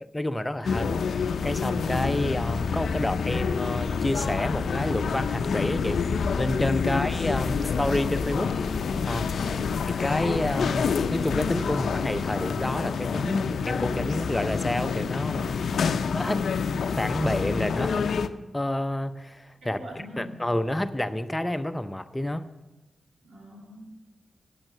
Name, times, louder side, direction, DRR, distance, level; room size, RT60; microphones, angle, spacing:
voice 1, 0.0-6.0 6.4-8.5 9.0-9.3 10.0-15.5 16.1-16.4 17.0-18.1 18.5-19.8 20.2-22.4, left 1 dB, 20° left, 11 dB, 0.6 m, -29 dB
sound 1, 0.6-18.3, left 6 dB, 80° left, 0.4 m, -28 dB
sound 2, 1.2-12.3, left 3 dB, 40° left, 0.9 m, -38 dB
voice 2, 9.4-9.7 19.6-20.3 23.2-23.9, right 1 dB, 75° right, -1 dB, 2.8 m, -41 dB
9.0 x 8.7 x 6.7 m, 1.1 s
cardioid pair, 45°, 0 cm